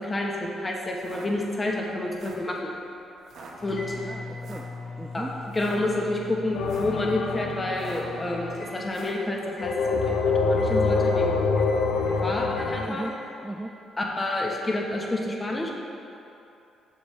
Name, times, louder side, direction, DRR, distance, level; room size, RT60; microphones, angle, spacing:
voice 1, 0.0-2.7 3.6-3.9 5.1-5.2 5.5-11.4 12.2-13.0 14.0-15.7, left 1 dB, 25° left, -1 dB, 1.1 m, -29 dB
sound 1, 1.0-1.3 2.0-2.5 3.2-3.5 4.4-4.7 5.4-5.8 6.5-7.0 7.7-8.2 8.9-9.2, right 4 dB, 65° right, 0.9 m, -45 dB
sound 2, 3.6-9.2 9.6-10.2 10.6-11.2 11.6-12.2 12.6-13.2, left 3 dB, 50° left, 1.7 m, -41 dB
voice 2, 4.0-4.7 5.0-5.3 12.8-13.2 13.4-13.7, right 1 dB, 15° right, 2 dB, 0.4 m, -36 dB
sound 3, 6.5-9.0 9.6-12.9, left 4 dB, 85° left, 0.5 m, -25 dB
7.3 x 6.9 x 3.3 m, 2.8 s
cardioid pair, 90°, 0 cm